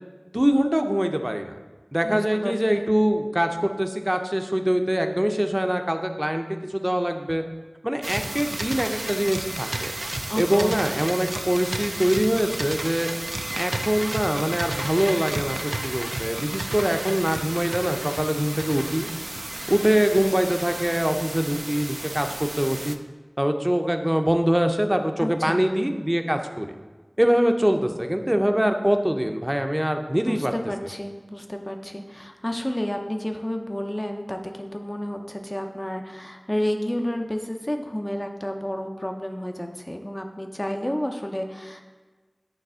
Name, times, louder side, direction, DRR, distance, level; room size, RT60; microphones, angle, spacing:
voice 1, 0.3-1.6 1.9-7.4 7.8-9.9 10.4-13.1 13.5-19.1 19.7-23.0 23.4-26.7 27.2-30.5, equal, 15° right, 5 dB, 0.6 m, -23 dB
voice 2, 2.0-2.8 10.3-10.8 25.2-25.6 30.2-41.8, equal, 25° left, 4 dB, 0.6 m, -30 dB
sound 1, 8.0-22.9, right 1 dB, 65° right, 0.4 m, -32 dB
9.2 x 3.3 x 5.5 m, 1.3 s
wide cardioid pair, 45°, 0 cm